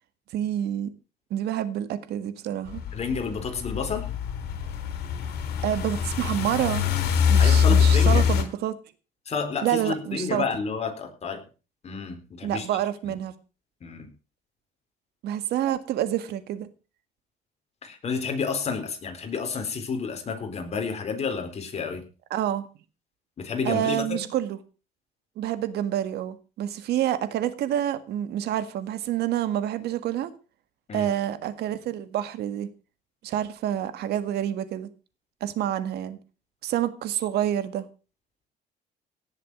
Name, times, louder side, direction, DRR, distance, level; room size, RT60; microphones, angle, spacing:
voice 1, 0.3-0.9 1.3-2.8 5.6-6.8 7.3-8.7 9.6-10.4 12.4-13.3 15.2-16.7 22.3-22.7 23.6-24.6 25.4-30.3 30.9-32.7 33.2-34.9 35.4-36.2 36.6-37.8, right 11 dB, 75° right, 12 dB, 1.8 m, -28 dB
sound 1, 2.7-8.4, left 7 dB, 75° left, 3.7 m, -23 dB
voice 2, 2.9-4.1 7.4-8.2 9.3-11.4 11.8-12.7 13.1-13.2 13.8-14.1 17.8-22.0 23.4-24.2 30.9-31.1, left 5 dB, 40° left, 5 dB, 4.1 m, -30 dB
17.5 x 7.5 x 6.2 m, 0.35 s
cardioid pair, 110°, 17 cm